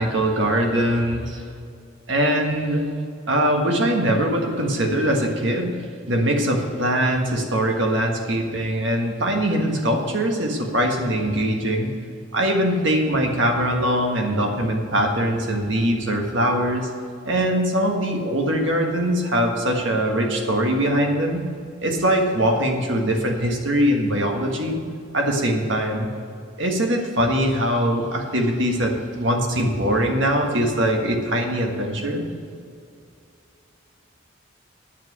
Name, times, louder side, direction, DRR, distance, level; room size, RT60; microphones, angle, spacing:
voice 1, 0.0-1.4 2.1-2.8 3.3-5.7 6.1-11.9 12.3-16.9 17.2-21.4 21.8-24.8 25.1-26.1 26.6-32.2, right 1 dB, 65° right, 2 dB, 1.6 m, -22 dB
9.4 x 7.4 x 8.0 m, 2.3 s
head